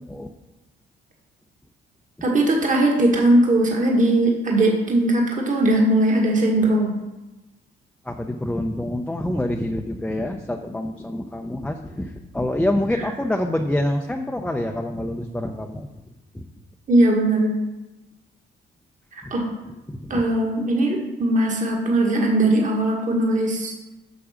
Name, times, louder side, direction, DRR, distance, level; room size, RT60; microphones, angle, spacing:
voice 1, 2.2-6.9 16.9-17.5 19.1-19.5 20.1-23.7, right 1 dB, 40° right, 0 dB, 1.6 m, -19 dB
voice 2, 8.0-15.9 16.3-16.4 19.2-19.3 19.9-20.2, left 1 dB, 5° left, 3 dB, 0.6 m, -26 dB
7.1 x 6.2 x 5.1 m, 1.0 s
cardioid pair, 90°, 20 cm